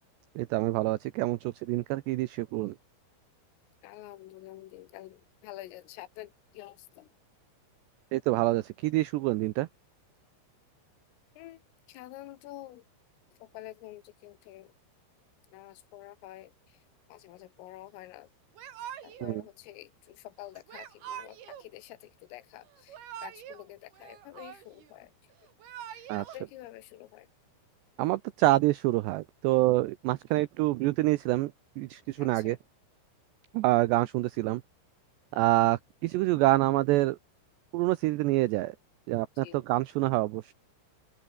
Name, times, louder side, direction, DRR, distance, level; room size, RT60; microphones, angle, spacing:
voice 1, 0.4-2.8 8.1-9.7 19.2-19.4 26.1-26.2 28.0-31.5 31.8-32.6 33.5-34.6 35.3-37.2 37.7-38.8 39.1-40.5, right 18 dB, 80° right, 2.5 m, -26 dB
voice 2, 3.8-7.1 11.4-11.6 11.9-12.8 13.4-14.7 15.5-16.8 17.1-18.3 19.0-25.1 25.9-27.3 32.2-32.6 39.4-39.6, left 15 dB, 85° left, 4.1 m, -48 dB
Yell / Crying sobbing, 18.6-19.4 20.7-21.7 22.7-23.6 23.9-24.9 25.4-26.4, right 10 dB, 60° right, 3.7 m, -44 dB
open air
omnidirectional pair, 5.8 m